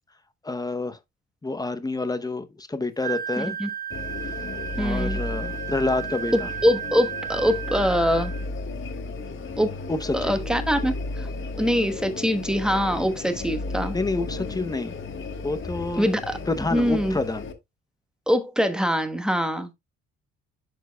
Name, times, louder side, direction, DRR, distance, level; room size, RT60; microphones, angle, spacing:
voice 1, 0.4-1.0 1.4-3.6 4.8-6.5 9.9-10.3 12.9-13.1 13.9-14.9 15.4-16.1 16.5-17.5, left 2 dB, 15° left, 0.7 m, -28 dB
Wind instrument woodwind instrument, 3.0-8.5, right 9 dB, 30° right, 1.4 m, -34 dB
voice 2, 3.4-3.7 4.8-5.2 6.6-8.3 9.6-9.8 10.1-11.3 11.6-14.0 16.0-16.4 16.7-17.2 18.3-19.7, equal, ahead, 1.2 m, -23 dB
sound 1, 3.9-17.5, left 3 dB, 40° left, 1.3 m, -34 dB
11.0 x 4.6 x 2.2 m
cardioid pair, 90°, 30 cm